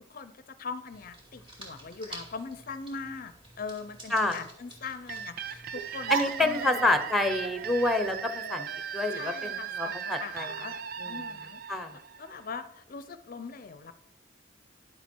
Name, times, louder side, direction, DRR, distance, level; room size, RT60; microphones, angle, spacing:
voice 1, 0.1-6.9 9.1-10.7 11.0-11.9 12.2-13.9, left 5 dB, 45° left, 11 dB, 0.5 m, -41 dB
sound 1, 0.9-8.1, right 1 dB, 25° right, 2.6 m, -50 dB
sound 2, 5.1-12.7, right 8 dB, 45° right, 0.4 m, -38 dB
sound 3, 5.7-10.8, right 5 dB, 90° right, 1.0 m, -39 dB
voice 2, 6.1-8.7 8.9-10.5 11.0-11.2 11.7-11.9, left 2 dB, ahead, 8 dB, 0.8 m, -28 dB
10.5 x 7.2 x 4.5 m, 0.81 s
head